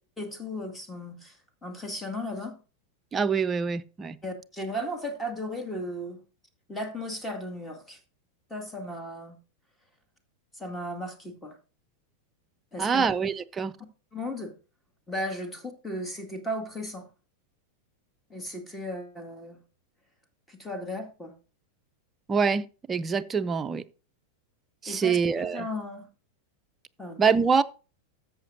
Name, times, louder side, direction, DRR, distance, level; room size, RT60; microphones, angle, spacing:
voice 1, 0.2-2.6 4.2-6.2 6.7-8.0 8.5-9.4 10.5-11.6 12.7-13.1 14.1-14.5 15.1-17.1 18.3-19.6 20.5-21.3 24.9-26.1 27.0-27.2, left 1 dB, 10° left, 2.0 m, -35 dB
voice 2, 3.1-4.2 12.8-13.7 22.3-23.8 24.8-25.7 27.2-27.6, right 5 dB, 20° right, 0.5 m, -25 dB
13.5 x 7.3 x 2.6 m
figure-of-eight pair, 90°, 0 cm